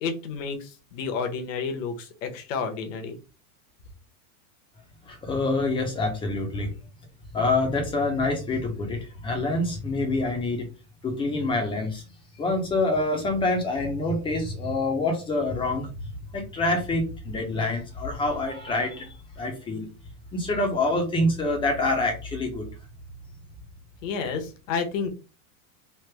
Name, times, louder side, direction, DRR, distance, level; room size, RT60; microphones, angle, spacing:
voice 1, 0.0-3.2 24.0-25.1, left 5 dB, 65° left, 5 dB, 1.0 m, -30 dB
voice 2, 5.1-6.7 7.3-10.7 11.0-12.0 12.4-15.9 16.3-19.9 20.3-22.7, left 2 dB, 10° left, 3 dB, 0.6 m, -26 dB
3.3 x 2.1 x 3.3 m, 0.33 s
supercardioid pair, 150°, 42 cm